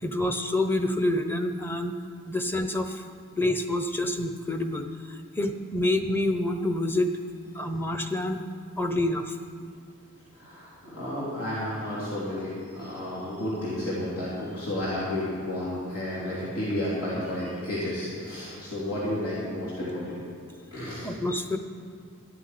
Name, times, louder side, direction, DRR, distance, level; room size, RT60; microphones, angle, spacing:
voice 1, 0.0-1.9 2.3-3.0 3.4-7.1 7.5-8.4 8.8-9.4 21.0-21.6, left 1 dB, 10° left, 7 dB, 0.7 m, -27 dB
voice 2, 10.3-20.2 20.7-21.1, left 1 dB, 85° left, -8 dB, 3.6 m, -32 dB
13.5 x 7.9 x 9.6 m, 2.2 s
head